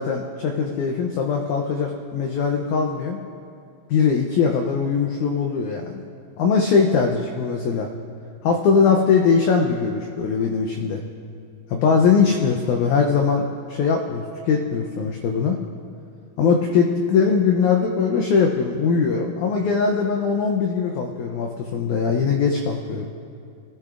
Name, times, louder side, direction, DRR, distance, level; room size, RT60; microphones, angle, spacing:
voice 1, 0.0-3.2 3.9-6.0 6.4-7.9 8.4-11.0 11.7-15.6 16.4-23.1, left 5 dB, 85° left, 2 dB, 1.7 m, -21 dB
20.5 x 13.5 x 2.5 m, 2.5 s
omnidirectional pair, 4.3 m